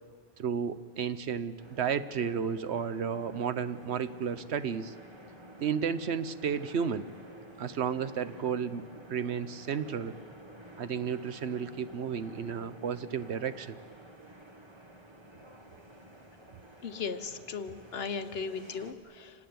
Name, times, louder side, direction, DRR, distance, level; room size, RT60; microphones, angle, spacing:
voice 1, 0.4-4.9 5.6-7.1 7.6-8.8 9.1-10.2 10.8-13.8, right 7 dB, 80° right, 12 dB, 1.2 m, -32 dB
sound 1, 1.6-18.9, right 1 dB, 25° right, 1.8 m, -51 dB
voice 2, 16.8-19.3, left 5 dB, 65° left, 9 dB, 1.3 m, -37 dB
27.0 x 18.5 x 9.5 m, 2.2 s
omnidirectional pair, 1.1 m